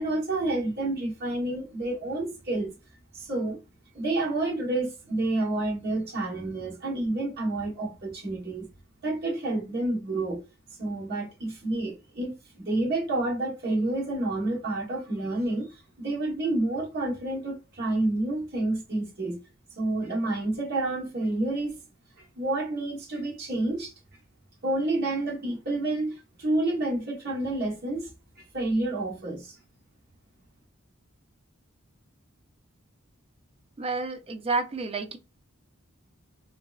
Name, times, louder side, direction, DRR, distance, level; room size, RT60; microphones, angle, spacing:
voice 1, 0.0-2.7 3.1-3.6 3.9-8.7 9.0-10.4 10.8-19.4 19.8-21.8 22.2-23.9 24.6-28.1 28.4-29.6, right 2 dB, 50° right, 1.0 m, -29 dB
voice 2, 33.8-35.2, right 3 dB, 30° right, 0.4 m, -30 dB
3.1 x 2.7 x 2.3 m
head